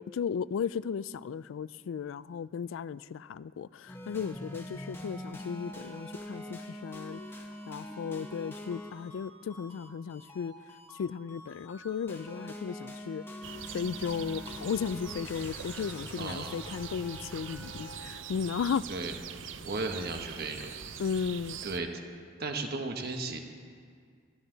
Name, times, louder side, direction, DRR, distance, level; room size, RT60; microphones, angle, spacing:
voice 1, 0.0-7.2 7.7-10.5 11.0-13.2 13.7-18.9 21.0-21.6, left 6 dB, 80° left, 18 dB, 0.3 m, -35 dB
sound 1, 3.9-18.0, left 1 dB, 10° left, 1.5 m, -44 dB
sound 2, 13.4-21.8, right 7 dB, 70° right, 0.7 m, -43 dB
voice 2, 16.2-16.5 18.9-19.1 19.6-20.7 21.6-21.9 22.4-23.4, right 3 dB, 50° right, 4 dB, 1.4 m, -35 dB
22.0 x 12.5 x 4.0 m, 2.1 s
head